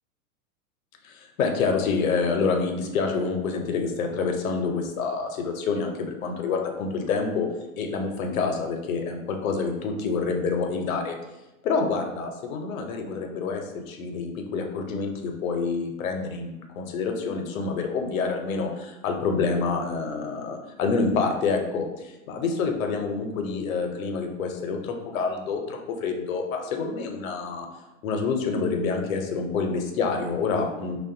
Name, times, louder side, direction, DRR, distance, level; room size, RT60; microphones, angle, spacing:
voice 1, 1.0-11.2 11.6-27.7 28.0-31.0, left 4 dB, 70° left, 4 dB, 0.6 m, -27 dB
2.5 x 2.2 x 2.5 m, 0.99 s
hypercardioid pair, 105°, 43 cm